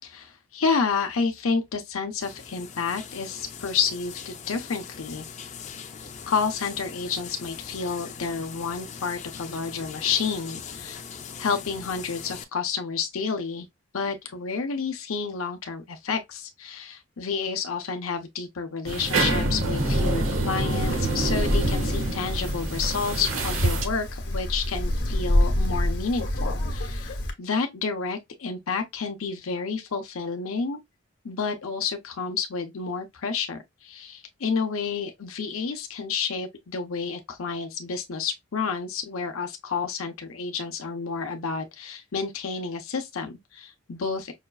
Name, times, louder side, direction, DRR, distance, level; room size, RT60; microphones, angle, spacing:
voice 1, 0.0-5.3 6.3-11.0 11.4-13.7 13.9-30.8 31.2-44.3, left 5 dB, 90° left, 0.7 m, -30 dB
sound 1, 2.2-12.4, left 6 dB, 35° left, 0.4 m, -41 dB
sound 2, 18.9-23.9, right 2 dB, 75° right, 0.8 m, -26 dB
Wind, 20.7-27.3, left 1 dB, 55° left, 0.9 m, -28 dB
5.7 x 2.3 x 2.3 m
head